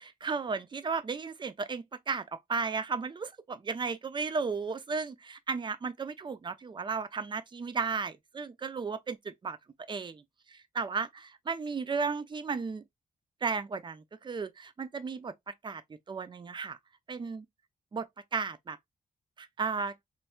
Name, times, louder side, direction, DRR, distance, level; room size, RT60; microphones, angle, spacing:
voice 1, 0.2-9.6 9.9-10.2 10.5-12.8 13.4-15.8 16.1-16.8 17.1-17.4 17.9-18.0 18.3-18.8 19.4-19.9, right 5 dB, 35° right, 0.5 m, -34 dB
4.3 x 2.6 x 2.3 m
wide cardioid pair, 125°, 14 cm